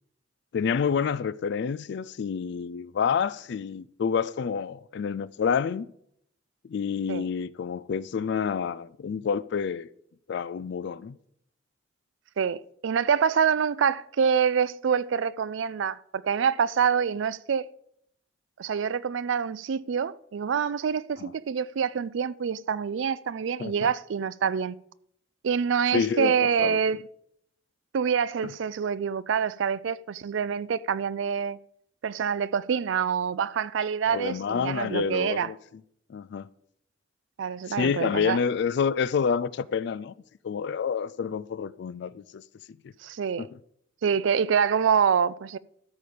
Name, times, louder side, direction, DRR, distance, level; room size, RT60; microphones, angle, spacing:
voice 1, 0.5-5.9 6.7-9.9 10.3-11.2 21.2-21.3 23.6-23.9 25.9-26.8 28.4-28.5 34.1-35.6 36.1-36.5 37.7-40.1 40.4-42.4 43.4-43.5, left 6 dB, 60° left, 0.4 m, -28 dB
voice 2, 12.4-17.7 18.6-24.8 25.4-27.0 27.9-31.6 32.0-35.5 37.4-38.4 43.0-43.5 44.0-45.6, right 7 dB, 75° right, 0.4 m, -26 dB
13.0 x 5.0 x 6.9 m
head